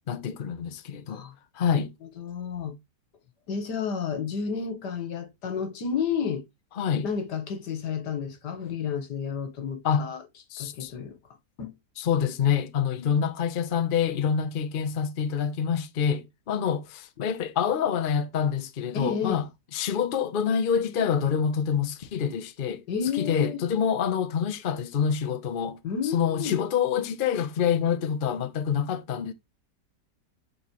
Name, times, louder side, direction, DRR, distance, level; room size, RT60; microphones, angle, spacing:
voice 1, 0.1-1.2 1.6-1.9 6.8-7.1 9.8-10.1 10.5-10.9 12.0-19.5 19.7-22.8 23.1-25.8 26.1-29.3, left 7 dB, 50° left, 0.6 m, -26 dB
voice 2, 2.2-2.7 3.5-6.4 7.0-10.2 10.6-11.2 11.6-11.7 18.9-19.4 22.9-23.6 25.8-26.6, left 6 dB, 80° left, 1.8 m, -31 dB
8.3 x 4.1 x 3.0 m
omnidirectional pair, 1.8 m